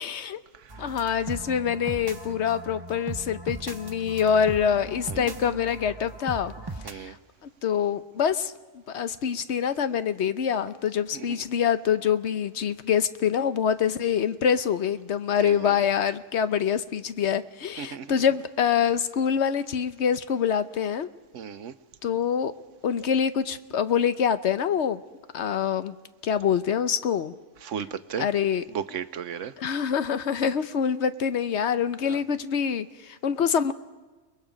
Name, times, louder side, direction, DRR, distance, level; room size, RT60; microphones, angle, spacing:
voice 1, 0.0-0.4 0.8-6.5 6.8-7.1 7.6-8.5 8.9-21.1 22.0-22.5 22.8-25.0 25.3-25.9 26.2-27.3 28.2-28.6 29.6-33.7, left 8 dB, 65° left, 12 dB, 1.1 m, -25 dB
sound 1, 0.7-6.9, right 2 dB, 20° right, 0.8 m, -39 dB
voice 2, 6.8-7.2 11.1-11.3 15.4-15.8 17.8-18.1 21.3-21.7 27.6-28.3 28.7-29.5 32.1-32.2, right 8 dB, 90° right, 12 dB, 1.2 m, -35 dB
30.0 x 20.5 x 5.2 m, 1.3 s
omnidirectional pair, 1.2 m